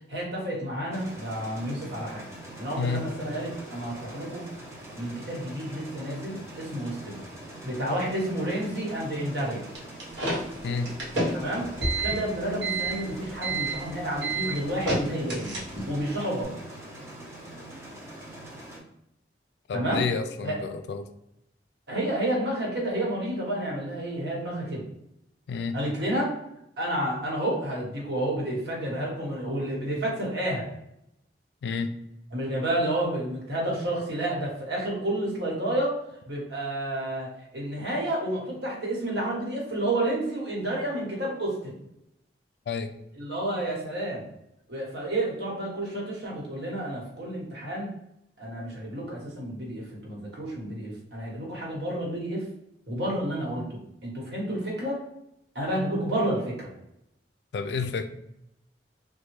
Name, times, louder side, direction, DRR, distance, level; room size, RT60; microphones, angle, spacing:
voice 1, 0.1-2.3 2.6-4.5 4.9-7.3 7.6-9.6 11.3-11.7 12.0-15.5 15.8-16.5 19.7-20.0 20.4-20.6 21.9-24.8 25.7-26.3 26.8-30.7 32.3-35.9 36.3-41.8 43.1-44.3 44.7-47.9 48.4-52.5 52.9-55.0 55.5-56.7, right 1 dB, 65° right, -3 dB, 1.1 m, -30 dB
sound 1, 0.9-18.8, right 1 dB, 15° right, 0.5 m, -43 dB
sound 2, 9.7-16.0, right 2 dB, 90° right, 1.0 m, -29 dB
voice 2, 19.7-21.1 25.5-25.8 31.6-31.9 42.7-42.9 57.5-58.1, left 5 dB, 65° left, 8 dB, 0.3 m, -30 dB
3.3 x 2.2 x 3.1 m, 0.81 s
head